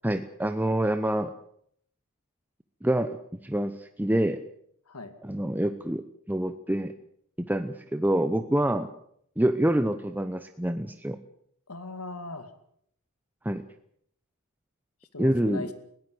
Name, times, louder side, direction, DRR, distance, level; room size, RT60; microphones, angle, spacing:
voice 1, 0.0-1.3 2.8-3.2 3.4-4.4 5.2-6.9 7.4-8.9 9.4-11.2 13.4-13.6 15.2-15.6, right 1 dB, 10° right, 9 dB, 0.8 m, -26 dB
voice 2, 11.7-12.5 15.1-15.7, left 2 dB, 80° left, 9 dB, 2.4 m, -38 dB
21.0 x 17.0 x 7.9 m, 0.68 s
head